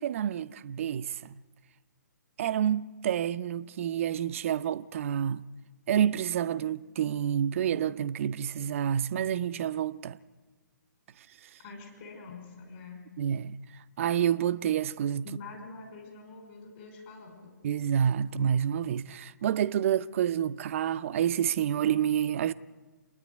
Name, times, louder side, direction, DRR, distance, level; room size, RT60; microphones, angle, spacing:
voice 1, 0.0-1.4 2.4-5.5 5.9-10.2 13.2-13.6 14.0-15.2 17.6-22.5, right 9 dB, 40° right, 0.7 m, -28 dB
voice 2, 11.6-13.0 15.2-17.5, left 4 dB, 35° left, 5.3 m, -45 dB
29.0 x 10.0 x 9.7 m
figure-of-eight pair, 140°, 11 cm